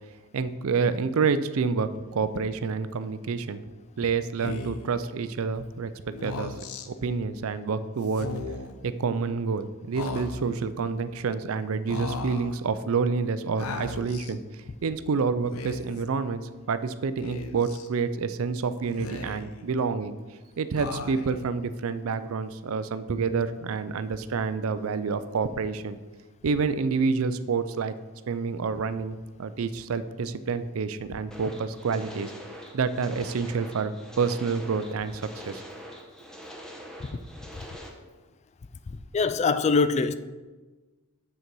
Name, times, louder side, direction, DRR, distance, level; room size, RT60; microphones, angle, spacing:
voice 1, 0.3-3.6 4.0-6.5 6.9-8.3 8.8-14.4 14.8-20.2 20.6-26.0 26.4-27.9 28.3-32.3 32.7-35.6, right 5 dB, 70° right, 0.4 m, -28 dB
Speech, 4.4-4.9 6.1-6.9 8.1-8.7 9.9-10.6 11.9-12.5 13.6-14.3 15.4-16.0 17.2-17.9 18.8-19.6 20.8-21.5, left 3 dB, 90° left, 0.7 m, -37 dB
sound 1, 31.3-37.9, equal, 5° left, 0.9 m, -44 dB
voice 2, 39.1-40.1, left 4 dB, 30° left, 0.3 m, -22 dB
6.9 x 6.5 x 4.6 m
head